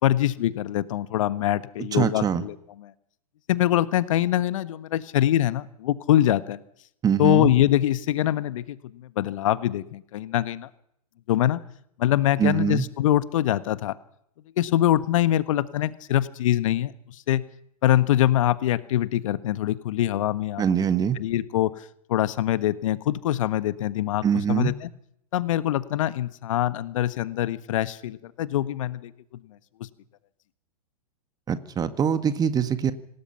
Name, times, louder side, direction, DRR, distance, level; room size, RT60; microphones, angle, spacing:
voice 1, 0.0-2.9 3.5-6.6 7.2-10.7 11.3-11.6 12.0-13.9 14.6-17.4 17.8-20.6 21.2-24.9 25.3-29.1 29.8-29.9, left 13 dB, 55° left, 14 dB, 1.4 m, -24 dB
voice 2, 1.9-2.4 7.0-7.5 12.4-12.9 20.6-21.2 24.2-24.7 31.5-32.9, right 8 dB, 20° right, 11 dB, 1.8 m, -23 dB
26.5 x 19.0 x 5.8 m, 0.69 s
hypercardioid pair, 110°, 19 cm